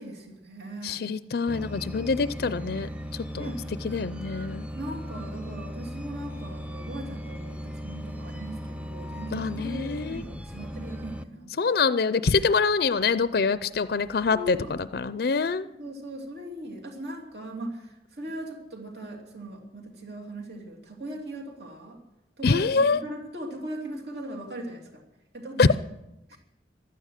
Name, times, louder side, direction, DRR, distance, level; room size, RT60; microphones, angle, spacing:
voice 1, 0.0-1.0 3.4-3.6 4.7-11.5 14.3-14.7 15.6-22.0 22.4-22.6 22.9-24.8 25.3-25.7 26.3-26.4, right 1 dB, 65° right, 1 dB, 3.0 m, -39 dB
voice 2, 0.8-2.9 3.3-3.5 3.8-4.7 9.3-10.2 11.6-15.7 22.4-23.0 25.6-25.7, left 4 dB, 60° left, 14 dB, 0.5 m, -25 dB
sound 1, 1.5-11.2, equal, 10° right, 0.6 m, -37 dB
15.5 x 12.0 x 6.5 m, 0.90 s
head